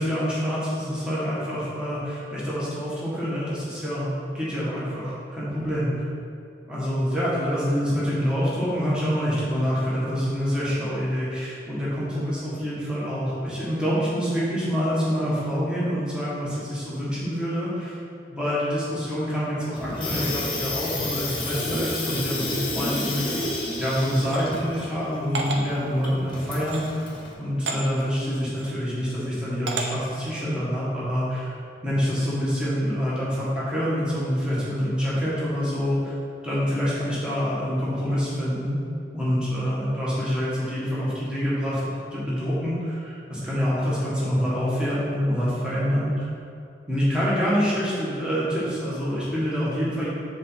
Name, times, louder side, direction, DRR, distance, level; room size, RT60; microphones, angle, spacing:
voice 1, 0.0-5.9 6.6-18.0 18.3-23.3 23.8-31.6 31.8-36.1 36.4-38.8 39.1-46.3 46.9-50.1, equal, 5° right, -9 dB, 1.4 m, -26 dB
Water tap faucet / Sink (filling or washing), 19.8-27.3, left 2 dB, 30° left, 1.1 m, -30 dB
sound 1, 24.2-24.4 25.3-25.6 26.6-26.9 27.7-27.8 28.5-28.8 29.7-29.9, right 3 dB, 90° right, 0.8 m, -30 dB
5.3 x 3.9 x 5.8 m, 2.6 s
head